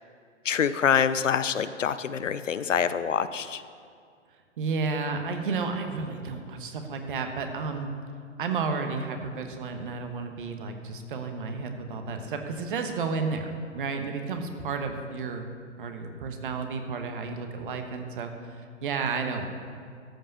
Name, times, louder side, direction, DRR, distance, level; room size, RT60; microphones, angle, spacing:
voice 1, 0.4-3.6, left 7 dB, 75° left, 13 dB, 0.7 m, -25 dB
voice 2, 4.6-7.9 8.4-15.5 15.8-19.5, right 4 dB, 45° right, 6 dB, 1.2 m, -32 dB
13.5 x 5.4 x 6.9 m, 2.2 s
figure-of-eight pair, 135°, 38 cm